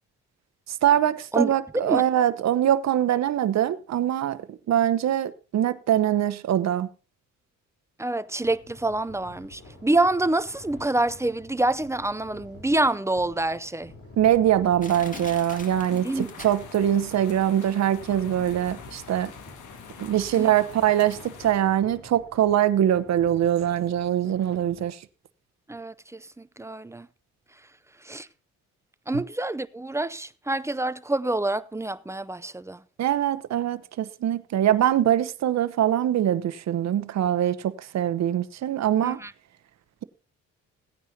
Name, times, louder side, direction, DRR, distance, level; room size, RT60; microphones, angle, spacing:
voice 1, 0.8-4.4 4.7-6.9 14.2-19.3 20.0-25.0 33.0-39.2, right 11 dB, 60° right, 0.9 m, -23 dB
voice 2, 1.3-2.0 8.0-13.9 16.0-16.3 20.3-20.5 25.7-26.2 26.6-27.1 28.1-28.3 29.1-32.8 39.0-39.3, right 2 dB, 10° right, 0.5 m, -26 dB
sound 1, 8.4-24.8, left 2 dB, 50° left, 3.8 m, -49 dB
Crushing, 12.7-12.8 13.4-13.5 14.2-14.3 14.8-17.0 17.3-17.4, left 2 dB, 25° left, 2.1 m, -43 dB
sound 2, 14.9-21.5, left 7 dB, 85° left, 1.8 m, -44 dB
17.0 x 9.5 x 2.8 m
cardioid pair, 90°, 30 cm